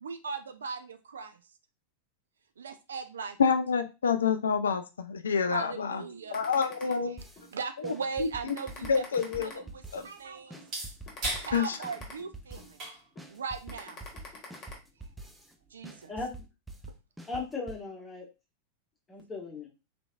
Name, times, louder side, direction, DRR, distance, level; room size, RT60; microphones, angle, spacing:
voice 1, 0.0-1.4 2.6-3.4 5.5-7.0 7.5-9.1 9.4-10.6 11.4-12.8 13.3-14.0 15.7-16.1, right 5 dB, 70° right, 9 dB, 0.4 m, -39 dB
voice 2, 3.4-6.0 6.3-7.2 8.2-8.3 8.9-9.6 9.9-10.0 11.5-11.8, left 6 dB, 70° left, 9 dB, 0.3 m, -27 dB
sound 1, 6.3-7.5 7.9-8.1 8.5-10.1 10.5-10.7 11.1-12.7 13.2-13.3 13.7-14.7, left 4 dB, 30° left, 1.2 m, -47 dB
sound 2, 7.2-7.5 7.8-10.2 10.5-12.9 13.2-15.5 15.8-17.8, right 2 dB, 5° right, 0.5 m, -46 dB
sound 3, 8.9-16.2, right 2 dB, 40° right, 1.7 m, -43 dB
voice 3, 17.3-18.3 19.1-19.7, left 3 dB, 15° left, -1 dB, 1.1 m, -37 dB
3.4 x 3.1 x 2.4 m, 0.28 s
figure-of-eight pair, 90°, 0 cm